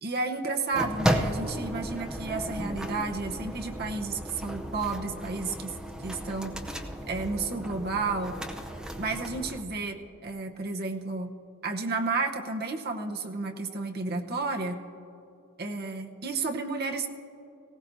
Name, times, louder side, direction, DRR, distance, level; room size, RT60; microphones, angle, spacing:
voice 1, 0.0-5.7 6.0-6.5 7.1-8.4 9.0-11.3 11.6-14.8 15.6-17.1, right 3 dB, 45° right, 3 dB, 0.9 m, -32 dB
sound 1, 0.7-9.6, equal, 5° right, 0.6 m, -34 dB
19.0 x 16.5 x 2.7 m, 2.9 s
head